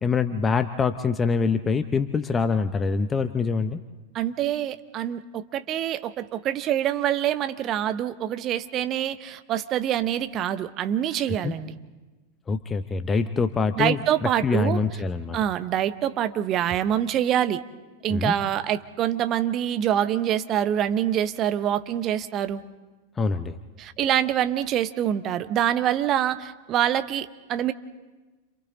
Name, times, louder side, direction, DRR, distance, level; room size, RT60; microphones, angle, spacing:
voice 1, 0.0-3.8 11.3-11.5 12.5-15.4 18.1-18.4 23.2-23.6, left 4 dB, 20° left, 10 dB, 0.8 m, -25 dB
voice 2, 4.1-11.7 13.8-14.8 15.3-17.6 18.0-22.6 23.8-27.7, right 10 dB, 35° right, 11 dB, 0.9 m, -25 dB
29.5 x 27.0 x 3.9 m, 1.2 s
figure-of-eight pair, 90°, 0 cm